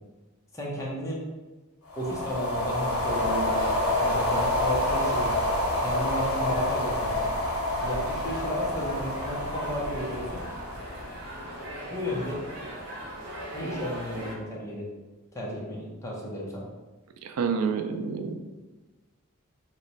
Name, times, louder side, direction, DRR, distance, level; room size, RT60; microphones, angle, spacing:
voice 1, 0.5-1.2 2.0-3.7 4.0-5.4 5.8-7.3 7.8-10.4 11.9-12.4 13.5-14.8 15.3-16.6, equal, 15° left, -5 dB, 0.6 m, -33 dB
sound 1, 1.9-11.4, left 1 dB, 75° left, 0.8 m, -28 dB
sound 2, 2.9-14.3, equal, 50° right, 0.8 m, -40 dB
voice 2, 17.2-18.4, right 5 dB, 90° right, 7 dB, 0.4 m, -28 dB
2.9 x 2.1 x 3.9 m, 1.2 s
head